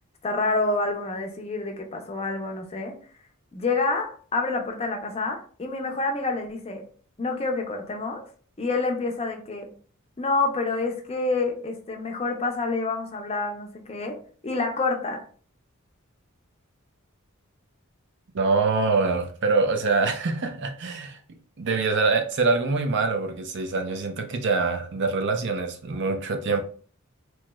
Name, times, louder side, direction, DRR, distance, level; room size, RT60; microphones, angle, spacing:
voice 1, 0.2-3.0 3.5-6.8 7.2-8.2 8.6-9.7 10.2-14.2 14.4-15.2, left 3 dB, 25° left, 3 dB, 0.5 m, -28 dB
voice 2, 18.3-21.2 21.6-26.6, right 4 dB, 55° right, 6 dB, 0.5 m, -24 dB
3.0 x 3.0 x 2.2 m, 0.43 s
head